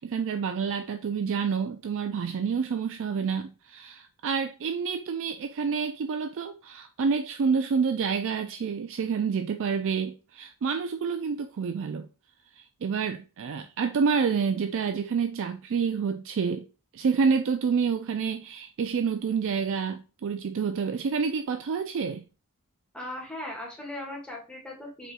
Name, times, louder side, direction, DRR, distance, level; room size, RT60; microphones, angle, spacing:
voice 1, 0.0-12.1 12.5-16.7 16.9-22.2, right 5 dB, 60° right, 0.4 m, -28 dB
voice 2, 22.9-25.1, left 1 dB, 5° left, 1.6 m, -38 dB
5.4 x 4.3 x 2.2 m
head